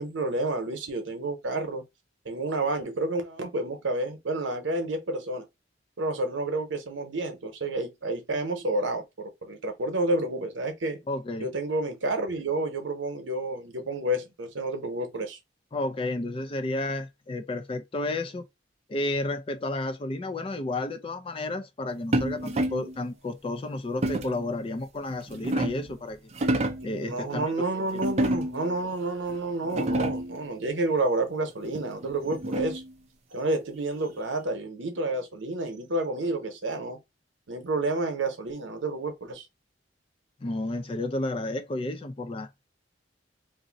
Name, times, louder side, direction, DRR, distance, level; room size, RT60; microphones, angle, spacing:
voice 1, 0.0-1.8 2.2-5.5 6.0-11.0 11.4-15.4 27.0-32.8 33.3-37.0 37.5-39.5, right 2 dB, 85° right, 0.8 m, -30 dB
voice 2, 11.1-11.5 15.7-18.4 18.9-26.2 26.5-26.6 26.8-27.5 27.9-28.0 40.4-42.5, left 2 dB, 30° left, 0.4 m, -31 dB
sound 1, 22.1-22.9 24.0-24.5 25.1-25.9 26.3-26.9 28.0-28.7 29.3-29.4 29.6-30.4 31.7-32.9, right 1 dB, 35° right, 0.5 m, -28 dB
2.6 x 2.1 x 3.8 m
head